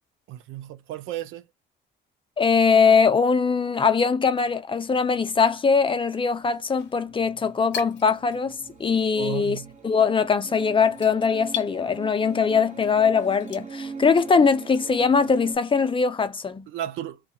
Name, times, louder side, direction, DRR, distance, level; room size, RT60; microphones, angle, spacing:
voice 1, 0.3-1.4 9.2-9.7 16.7-17.2, right 12 dB, 90° right, 0.5 m, -33 dB
voice 2, 2.4-9.6 9.8-16.6, left 5 dB, 25° left, 0.4 m, -21 dB
sound 1, 5.1-15.5, right 5 dB, 35° right, 0.8 m, -42 dB
sound 2, 6.2-8.8 9.1-14.8, left 9 dB, 65° left, 0.7 m, -40 dB
2.3 x 2.1 x 2.7 m
cardioid pair, 90°, 20 cm